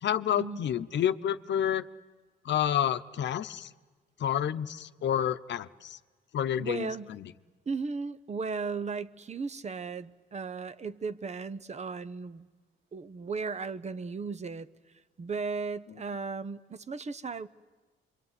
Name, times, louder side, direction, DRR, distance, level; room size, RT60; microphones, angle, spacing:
voice 1, 0.0-1.9 2.4-3.7 4.2-6.0 6.3-6.9 7.2-7.3, left 10 dB, 65° left, 11 dB, 0.9 m, -29 dB
voice 2, 6.6-7.1 7.7-12.5 12.9-14.7 15.2-17.5, right 4 dB, 35° right, 14 dB, 0.9 m, -36 dB
25.5 x 23.5 x 9.7 m, 1.3 s
cardioid pair, 90°, 20 cm